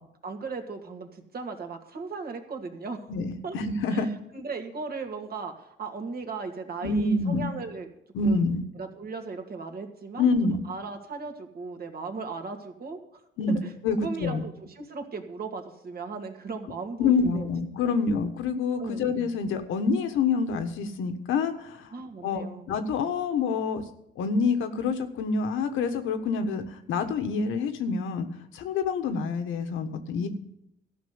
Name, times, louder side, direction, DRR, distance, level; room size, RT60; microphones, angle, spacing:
voice 1, 0.2-3.1 3.4-3.6 3.9-7.9 8.2-8.5 8.8-13.2 13.6-13.7 14.0-17.5 17.8-18.0 18.8-19.1 21.9-22.7, right 4 dB, 50° right, 5 dB, 2.2 m, -37 dB
voice 2, 3.1-4.1 6.8-7.5 8.1-8.6 10.2-10.6 13.4-13.6 13.8-14.4 17.0-21.9 22.2-23.8 24.2-28.3 28.5-30.3, left 4 dB, 85° left, 7 dB, 1.5 m, -27 dB
13.5 x 6.0 x 9.5 m, 0.80 s
cardioid pair, 90°, 20 cm